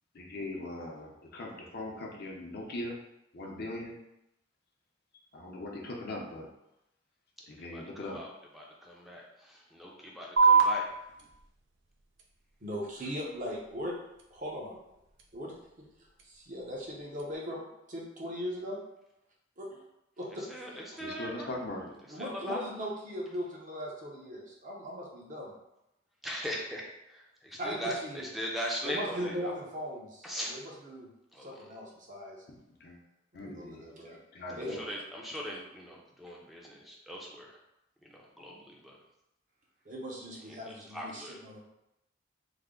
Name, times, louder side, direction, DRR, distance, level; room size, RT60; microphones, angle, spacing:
voice 1, 0.1-3.0 3.3-3.9 5.3-6.5 7.5-8.2 21.0-21.9 32.8-33.0 33.3-33.8 34.3-34.8, left 1 dB, 55° left, -1 dB, 0.6 m, -40 dB
voice 2, 8.1-10.8 20.5-21.5 22.2-22.6 26.2-29.5 30.2-30.6 31.3-31.5 34.9-37.5 38.1-39.0 40.9-41.4, equal, ahead, -3 dB, 0.6 m, -39 dB
sound 1, 10.4-17.4, right 5 dB, 70° right, 0.5 m, -31 dB
voice 3, 12.6-14.0 14.3-14.8 15.3-15.9 16.2-18.8 19.6-19.8 20.2-20.8 22.1-25.5 27.6-28.3 28.8-31.1 31.4-32.5 33.3-34.2 34.6-35.0 35.3-35.4 39.8-41.6, equal, 45° right, -3 dB, 0.8 m, -39 dB
3.3 x 2.1 x 3.7 m, 0.86 s
head